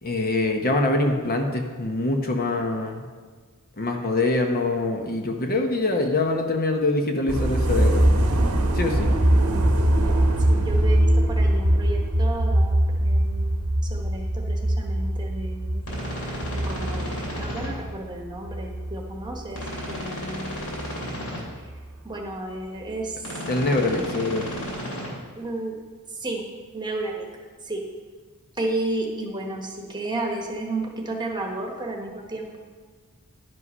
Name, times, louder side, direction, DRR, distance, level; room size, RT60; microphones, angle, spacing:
voice 1, 0.0-3.0 3.8-8.0 8.7-9.1 23.5-24.5, left 2 dB, 40° left, 3 dB, 0.9 m, -24 dB
sound 1, 7.3-19.9 20.2-21.1 21.7-21.8, right 1 dB, 70° right, 0.9 m, -22 dB
voice 2, 10.5-13.6 13.9-15.9 16.5-20.7 22.0-23.2 25.4-25.7 26.2-26.4 26.7-27.3 27.6-27.8 28.6-32.6, right 2 dB, 20° right, 1 dB, 1.1 m, -32 dB
sound 2, 15.8-17.7 19.5-21.4 23.2-25.1, equal, 80° left, 3.4 m, -33 dB
11.0 x 5.5 x 5.5 m, 1.5 s
head